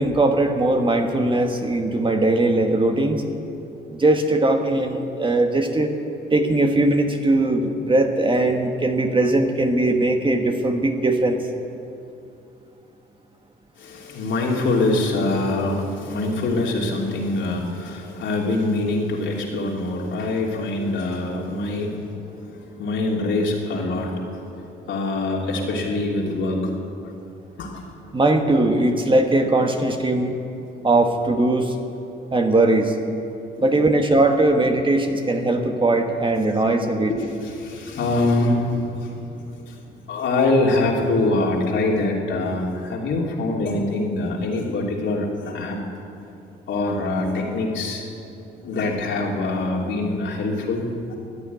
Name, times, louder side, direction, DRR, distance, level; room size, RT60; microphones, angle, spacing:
voice 1, 0.0-3.2 4.0-5.9 6.3-11.4 28.1-30.3 30.8-31.7 32.3-32.9 33.6-37.1, right 2 dB, 25° right, 4 dB, 1.5 m, -20 dB
voice 2, 13.8-26.7 27.6-27.8 33.5-33.9 37.1-39.7 40.1-45.8 46.7-48.1 48.6-51.2, left 2 dB, 70° left, -2 dB, 3.0 m, -24 dB
14.5 x 10.0 x 9.4 m, 2.7 s
cardioid pair, 90°, 20 cm